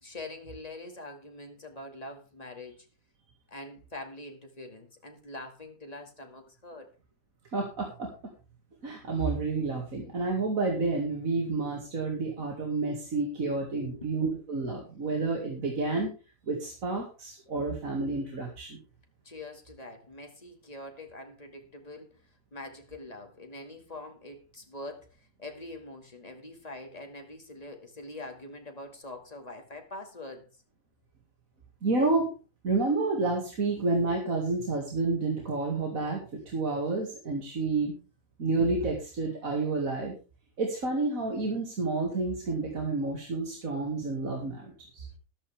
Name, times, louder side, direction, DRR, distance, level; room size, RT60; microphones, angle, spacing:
voice 1, 0.0-2.9 3.5-6.9 13.8-14.1 19.2-22.2 22.5-30.5, left 2 dB, 25° left, 3 dB, 2.2 m, -44 dB
voice 2, 7.5-8.1 8.8-16.1 16.5-18.8 31.8-32.3 32.6-36.2 36.5-37.9 38.4-40.1 40.6-45.1, right 3 dB, 70° right, 0 dB, 2.6 m, -29 dB
13.5 x 11.5 x 3.5 m, 0.32 s
omnidirectional pair, 1.5 m